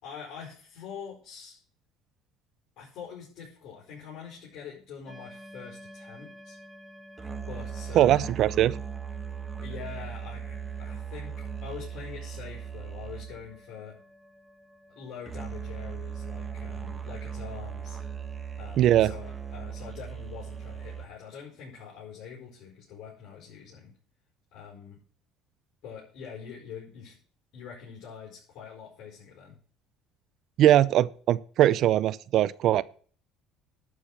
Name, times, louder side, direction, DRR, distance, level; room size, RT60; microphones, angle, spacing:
voice 1, 0.0-1.6 2.8-6.6 7.5-8.3 9.6-14.0 14.9-18.0 18.6-23.9 24.5-25.0 25.8-27.2 27.5-29.6, left 7 dB, 65° left, 4.8 m, -44 dB
sound 1, 5.1-21.1, right 7 dB, 15° right, 1.2 m, -39 dB
voice 2, 7.9-8.7 18.8-19.1 30.6-32.8, right 12 dB, 55° right, 0.5 m, -21 dB
11.0 x 4.8 x 7.5 m
cardioid pair, 125°, 0 cm